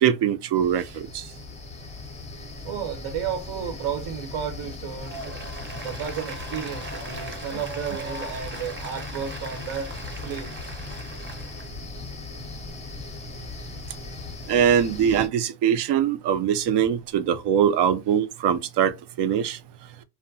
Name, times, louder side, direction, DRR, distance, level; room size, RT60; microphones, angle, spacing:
voice 1, 0.0-1.2 14.5-19.6, right 9 dB, 60° right, 0.5 m, -22 dB
sound 1, 0.5-15.3, left 3 dB, 15° left, 0.5 m, -38 dB
voice 2, 2.6-5.4 5.8-10.7 16.8-16.9, right 8 dB, 80° right, 1.1 m, -33 dB
Applause, 4.9-11.7, right 2 dB, 25° right, 0.7 m, -39 dB
2.7 x 2.1 x 2.5 m
cardioid pair, 115°, 48 cm